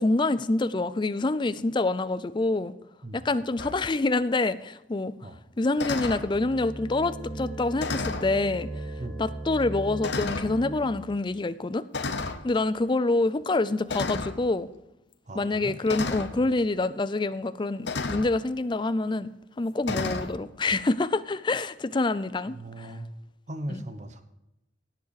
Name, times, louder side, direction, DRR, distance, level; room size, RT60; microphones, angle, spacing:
voice 1, 0.0-2.7 3.1-5.1 5.6-8.7 9.2-11.8 12.4-14.7 15.3-19.3 19.6-22.9 23.7-23.8, left 2 dB, 25° left, 14 dB, 0.4 m, -26 dB
sound 1, 3.6-3.8 5.8-6.3 7.8-8.3 9.2-9.3 10.0-10.5 11.9-12.4 13.9-14.4 15.9-16.3 17.9-18.3 19.8-20.3, left 3 dB, 65° left, 0.9 m, -31 dB
sound 2, 6.1-11.2, right 1 dB, 5° right, 4.3 m, -38 dB
voice 2, 15.3-15.8 19.9-20.1 22.5-23.1 23.5-24.2, right 1 dB, 40° right, 9 dB, 1.0 m, -38 dB
17.0 x 8.0 x 4.9 m, 0.92 s
head